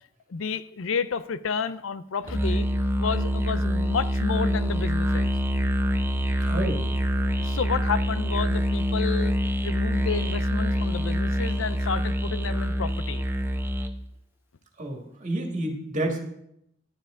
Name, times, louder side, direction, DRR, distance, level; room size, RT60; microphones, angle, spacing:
voice 1, 0.3-2.7 3.0-5.4 7.4-9.3 9.6-13.2, left 5 dB, 80° left, 14 dB, 0.5 m, -31 dB
Musical instrument, 2.3-14.0, equal, 10° right, 0.6 m, -25 dB
voice 2, 6.5-6.8 14.8-16.2, right 1 dB, 40° right, 2 dB, 1.8 m, -29 dB
11.0 x 10.0 x 3.7 m, 0.75 s
head